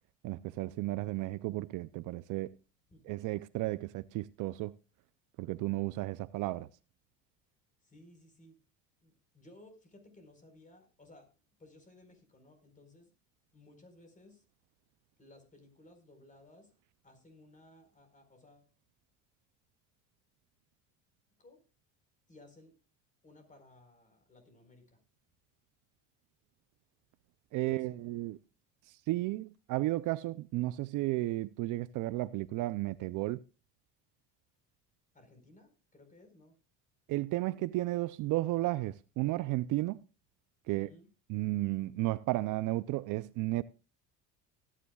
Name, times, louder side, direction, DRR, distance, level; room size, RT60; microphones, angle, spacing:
voice 1, 0.2-2.6 3.1-4.7 5.4-6.7 27.5-28.4 28.9-33.4 37.1-40.0 40.7-40.9 41.3-43.6, right 18 dB, 60° right, 0.5 m, -33 dB
voice 2, 2.9-3.2 7.8-8.6 9.0-13.1 13.5-14.4 15.2-16.7 17.0-18.7 21.4-21.6 22.3-22.7 23.2-25.0 27.5-28.1 35.1-36.5 40.7-41.1, left 2 dB, 20° left, 4.5 m, -59 dB
19.5 x 10.0 x 2.3 m
supercardioid pair, 90°, 35 cm